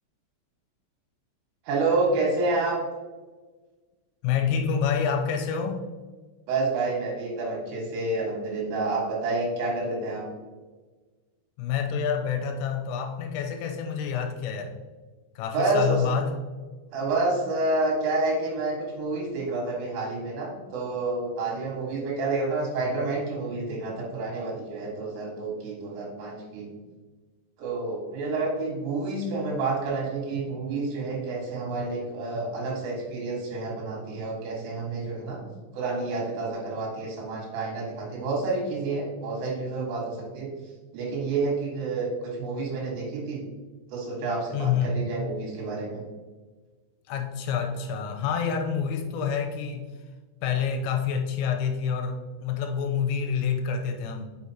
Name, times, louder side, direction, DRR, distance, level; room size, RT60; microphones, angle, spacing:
voice 1, 1.7-2.8 6.5-10.2 15.5-16.0 16.9-26.7 27.6-35.4 35.7-40.5 40.9-43.4 43.9-46.0, right 3 dB, 80° right, -3 dB, 4.3 m, -29 dB
voice 2, 4.2-5.9 11.6-14.7 15.4-16.4 44.5-45.0 47.1-49.9 50.4-54.3, left 7 dB, 90° left, 4 dB, 3.4 m, -27 dB
6.8 x 6.3 x 2.9 m, 1.3 s
omnidirectional pair, 5.7 m